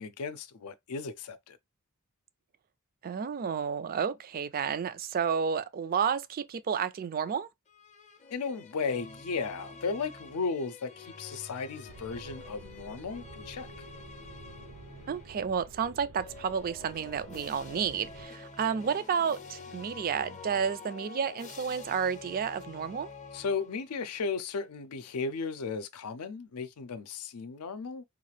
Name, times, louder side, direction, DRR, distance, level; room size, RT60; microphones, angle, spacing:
voice 1, 0.0-1.6 8.3-13.7 23.3-28.0, left 4 dB, 85° left, 0.5 m, -35 dB
voice 2, 3.0-7.5 15.1-23.1, right 7 dB, 40° right, 0.4 m, -31 dB
sound 1, 7.7-15.5 16.1-24.0, left 4 dB, 35° left, 0.5 m, -48 dB
sound 2, 11.9-18.3, right 4 dB, 85° right, 0.6 m, -50 dB
3.6 x 2.4 x 3.2 m
head